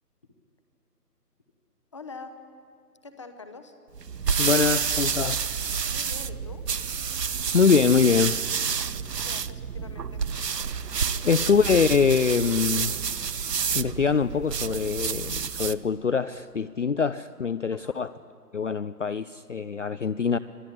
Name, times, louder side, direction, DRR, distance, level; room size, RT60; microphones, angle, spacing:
voice 1, 1.9-2.4 3.0-3.7 5.9-6.7 9.2-10.2 11.1-11.3 17.7-18.0, left 4 dB, 20° left, 8 dB, 1.0 m, -44 dB
sound 1, 3.9-15.9, right 6 dB, 75° right, 1.0 m, -29 dB
voice 2, 4.4-5.5 7.5-8.4 11.2-13.0 13.7-18.1 18.5-20.4, left 6 dB, 50° left, 15 dB, 0.6 m, -23 dB
25.5 x 18.0 x 9.9 m, 2.4 s
figure-of-eight pair, 160°, 49 cm